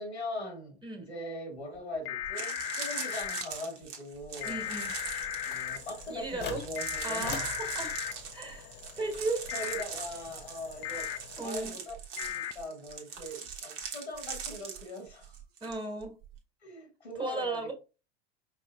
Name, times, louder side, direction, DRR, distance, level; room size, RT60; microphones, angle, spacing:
voice 1, 0.0-4.6 5.4-7.5 9.0-9.1 9.5-11.1 11.4-15.4 16.6-17.7, left 1 dB, 90° left, 1.5 m, -41 dB
voice 2, 0.8-1.1 4.4-4.9 6.1-6.6 7.0-7.9 8.3-9.8 10.9-11.0 11.4-11.8 15.6-16.1 17.2-17.7, right 2 dB, 15° right, 1.6 m, -36 dB
step on fallen-leaf, 1.7-1.8 2.2-15.8 16.0-16.4, right 7 dB, 60° right, 1.3 m, -41 dB
sound 1, 2.1-3.4 4.4-5.8 6.8-8.1 9.5-9.8 10.8-11.2 12.2-12.5, left 11 dB, 45° left, 0.5 m, -36 dB
sound 2, 4.4-11.5, left 6 dB, 30° left, 1.0 m, -46 dB
5.0 x 3.4 x 2.5 m
hypercardioid pair, 85°, 32 cm